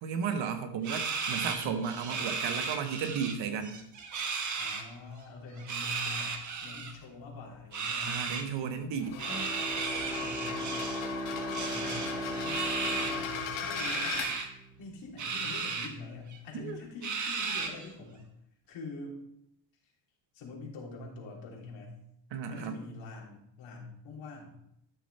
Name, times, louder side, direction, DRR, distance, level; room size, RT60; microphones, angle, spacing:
voice 1, 0.0-3.8 8.1-9.2 16.5-16.8 22.3-22.8, right 6 dB, 65° right, 7 dB, 1.4 m, -34 dB
sound 1, 0.8-3.3 3.6-4.8 5.6-6.9 7.7-8.5 9.2-11.1 11.5-13.2 13.7-14.5 15.2-15.9 16.3-16.4 17.0-17.9, right 5 dB, 35° right, 1.2 m, -35 dB
voice 2, 1.3-1.7 4.6-8.3 10.0-10.9 11.4-14.2 14.8-18.3 18.7-19.3 20.3-22.0 22.5-24.6, left 3 dB, 65° left, -2 dB, 3.2 m, -45 dB
sound 2, 9.0-14.3, left 6 dB, 85° left, 2.2 m, -38 dB
Bowed string instrument, 9.3-14.8, equal, 10° right, 0.8 m, -38 dB
12.5 x 6.7 x 3.4 m, 0.76 s
cardioid pair, 140°, 48 cm